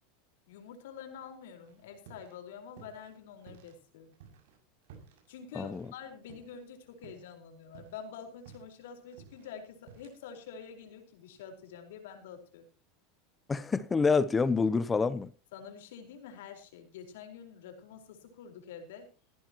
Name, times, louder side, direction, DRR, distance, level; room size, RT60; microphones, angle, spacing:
voice 1, 0.5-4.1 5.3-12.6 15.5-19.1, left 7 dB, 80° left, 4.7 m, -47 dB
sound 1, 1.6-2.4 2.7-3.8 4.1-6.7 7.0-7.3 7.6-10.4, right 6 dB, 75° right, 6.8 m, -55 dB
voice 2, 13.5-15.3, left 4 dB, 15° left, 0.7 m, -27 dB
16.5 x 16.0 x 3.0 m
supercardioid pair, 140°, 0 cm